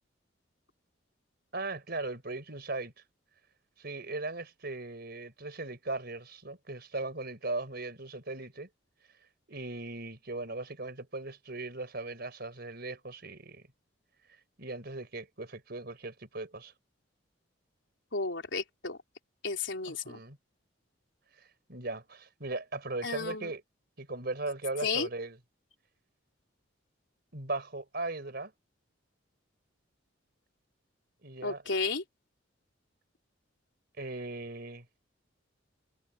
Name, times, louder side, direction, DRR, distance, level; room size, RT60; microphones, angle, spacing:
voice 1, 1.5-2.9 3.8-8.7 9.5-13.6 14.6-16.7 19.9-20.4 21.7-23.6 24.0-25.4 27.3-28.5 31.2-31.6 34.0-34.8, right 2 dB, 55° right, 4.4 m, -38 dB
voice 2, 18.1-19.0 19.4-20.2 23.0-23.5 24.8-25.1 31.4-32.0, left 4 dB, 70° left, 3.8 m, -33 dB
head